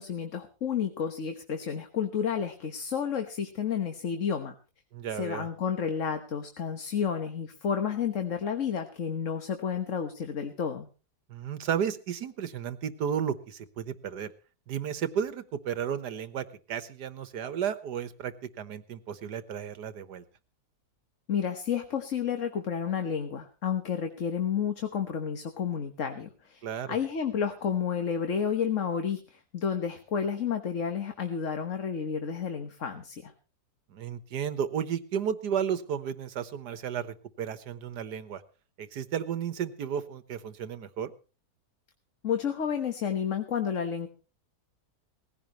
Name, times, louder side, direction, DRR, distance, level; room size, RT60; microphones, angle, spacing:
voice 1, 0.0-4.5 5.1-10.9 21.3-26.6 26.9-33.3 42.2-44.1, left 7 dB, 50° left, 6 dB, 1.5 m, -31 dB
voice 2, 4.9-5.5 11.3-14.3 14.7-20.2 26.6-27.0 33.9-38.4 38.8-41.1, right 8 dB, 85° right, 12 dB, 1.7 m, -33 dB
19.0 x 15.5 x 3.1 m, 0.34 s
omnidirectional pair, 1.7 m